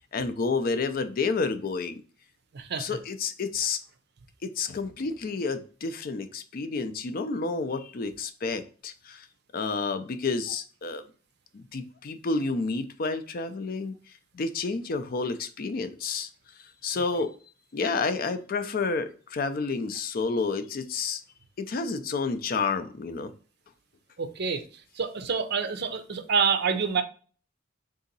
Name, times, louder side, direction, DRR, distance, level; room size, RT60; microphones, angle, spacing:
voice 1, 0.1-2.0 2.8-3.8 4.4-9.3 9.5-11.0 11.5-13.9 14.3-16.3 16.8-17.3 17.7-21.2 21.6-23.3, left 4 dB, 45° left, 0.4 m, -30 dB
voice 2, 2.5-2.9 24.2-24.6 25.0-27.0, right 5 dB, 55° right, 0.5 m, -27 dB
3.7 x 2.7 x 3.9 m
head